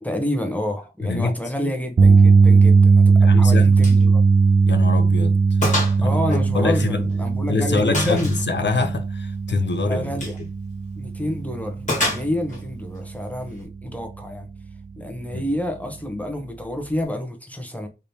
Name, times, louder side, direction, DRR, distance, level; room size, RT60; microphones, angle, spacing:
voice 1, 0.0-4.2 6.0-8.3 9.8-10.4 10.9-14.5 15.0-17.9, left 1 dB, 10° left, 0.8 m, -28 dB
voice 2, 1.0-1.7 3.2-3.7 4.7-5.3 5.6-7.1 7.4-10.3 15.3-15.5, left 3 dB, 70° left, 0.5 m, -25 dB
sound 1, 2.0-14.2 14.6-14.8 17.0-17.1, right 4 dB, 45° right, 0.4 m, -18 dB
Gunshot gunfire, 3.8-4.0 4.4-4.5 4.9-5.0 5.6-6.0 6.3-7.3 7.9-8.5 10.1-10.4 11.9-12.6, left 1 dB, 40° left, 1.5 m, -26 dB
3.3 x 3.0 x 2.7 m
wide cardioid pair, 60°, 19 cm